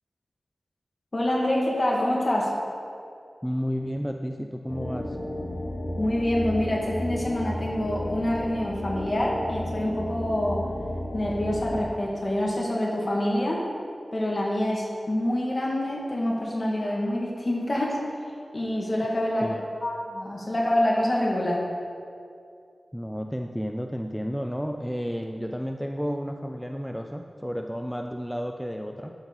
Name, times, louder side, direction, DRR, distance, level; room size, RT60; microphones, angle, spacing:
voice 1, 1.1-2.5 6.0-10.6 11.1-13.6 14.1-18.0 18.5-19.5 19.8-21.6, left 1 dB, 40° left, -3 dB, 2.0 m, -26 dB
voice 2, 3.4-5.2 19.4-19.6 22.9-29.1, equal, ahead, 4 dB, 0.4 m, -32 dB
sound 1, 4.7-11.8, left 1 dB, 65° left, 1.6 m, -33 dB
12.0 x 6.9 x 4.0 m, 2.4 s
wide cardioid pair, 85°, 0 cm